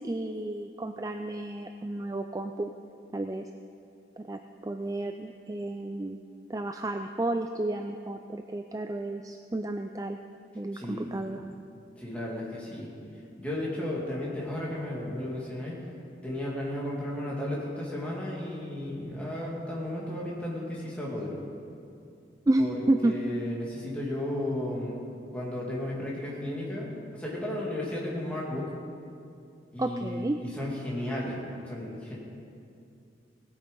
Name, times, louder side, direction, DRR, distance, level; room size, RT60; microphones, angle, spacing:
voice 1, 0.0-2.7 3.1-3.5 4.2-6.2 6.5-10.2 10.5-11.4 22.5-23.1 29.8-30.4, right 2 dB, 20° right, 6 dB, 0.3 m, -31 dB
voice 2, 10.7-11.1 12.0-12.9 13.4-15.7 16.2-21.3 22.6-22.8 23.0-25.0 25.3-28.7 29.7-31.4 31.7-32.2, left 1 dB, 5° left, -5 dB, 2.5 m, -34 dB
18.0 x 8.7 x 5.5 m, 2.5 s
head